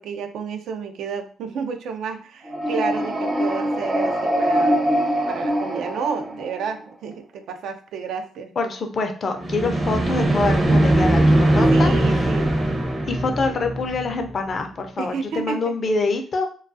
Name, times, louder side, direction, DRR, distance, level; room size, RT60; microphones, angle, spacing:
voice 1, 0.0-4.8 5.3-8.5 11.7-12.5 15.0-15.7, right 6 dB, 75° right, 7 dB, 0.3 m, -31 dB
sound 1, 2.4-6.8 9.4-14.3, right 1 dB, 25° right, 0.5 m, -21 dB
voice 2, 8.6-12.3 13.0-16.5, left 3 dB, 45° left, 5 dB, 0.4 m, -25 dB
2.3 x 2.2 x 2.6 m, 0.42 s
cardioid pair, 90°, 0 cm